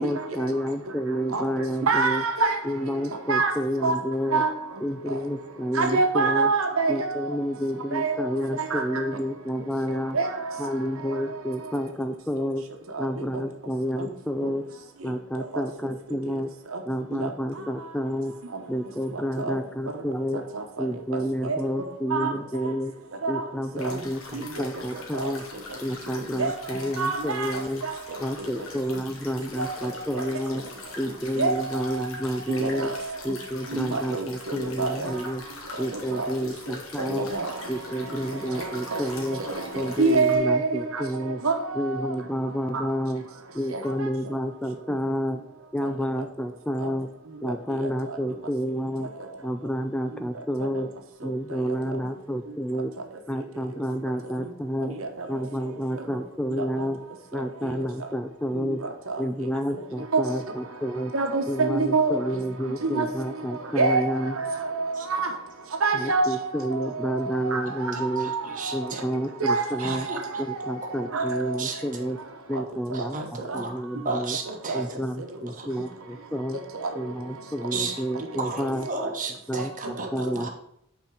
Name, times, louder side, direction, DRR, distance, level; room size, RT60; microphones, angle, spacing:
voice 1, 0.0-2.2 2.6-4.4 4.8-6.5 6.9-10.2 10.6-12.6 13.0-14.6 15.0-16.5 16.8-18.4 18.7-20.5 20.8-22.9 23.3-25.5 25.8-27.8 28.2-30.6 31.0-32.9 33.2-35.4 35.8-37.3 37.7-39.4 39.7-41.4 41.7-43.3 43.5-45.4 45.7-47.1 47.4-49.1 49.4-50.9 51.2-52.9 53.3-55.0 55.3-57.0 57.3-58.8 59.2-61.1 61.5-64.4 65.9-68.3 68.7-70.1 70.4-72.2 72.5-74.4 74.7-76.6 76.9-78.9 79.5-80.5, equal, 5° left, 8 dB, 0.3 m, -30 dB
voice 2, 1.9-2.6 3.3-3.5 3.8-3.9 4.3-4.5 5.8-6.9 7.9-8.2 8.7-8.8 10.1-10.2 21.5-21.6 22.1-22.3 23.2-23.3 26.4-26.5 27.0-27.5 31.4-31.5 32.6-32.9 33.9-34.2 34.8-35.1 37.1-37.4 38.9-39.0 40.0-40.8 41.4-41.5 60.1-60.2 61.1-62.1 62.9-63.1 63.8-64.1 64.5-64.8 65.1-65.3 65.8-66.2 67.5-67.6 68.0-68.1 68.3-68.4 69.4-69.6 71.1-71.2 74.7-74.8, right 4 dB, 85° right, 4 dB, 1.1 m, -23 dB
sound 1, 23.8-40.4, left 3 dB, 90° left, 1.7 m, -43 dB
voice 3, 68.2-69.0 69.8-70.2 71.6-71.8 73.1-73.7 74.0-74.8 75.6-75.7 76.9-77.0 77.7-77.9 78.4-78.6 78.9-80.1 80.4-80.5, right 4 dB, 40° right, 2 dB, 1.3 m, -33 dB
5.7 x 4.4 x 6.3 m, 0.73 s
head